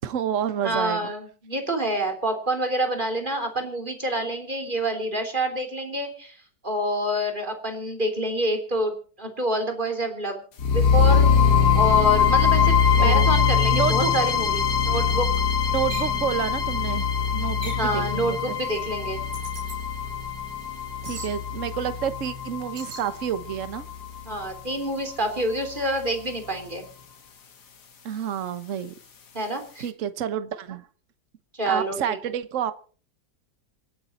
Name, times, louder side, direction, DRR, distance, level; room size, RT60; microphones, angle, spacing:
voice 1, 0.0-1.0 13.0-13.3 13.7-14.1 15.7-18.6 21.0-23.9 28.0-28.9 29.8-30.9 31.6-32.7, right 9 dB, 50° right, 12 dB, 1.3 m, -29 dB
voice 2, 0.6-6.4 6.6-10.4 10.7-11.3 11.7-15.3 17.8-19.2 24.3-26.9 29.3-29.9 31.5-32.2, right 1 dB, 25° right, 4 dB, 3.6 m, -27 dB
sound 1, 10.6-24.6, left 6 dB, 60° left, 2.2 m, -22 dB
sound 2, 15.9-16.2 17.6-17.9 19.3-19.8 21.0-21.3 22.8-23.1, right 3 dB, 70° right, 4.8 m, -38 dB
27.5 x 9.4 x 4.3 m, 0.41 s
omnidirectional pair, 2.0 m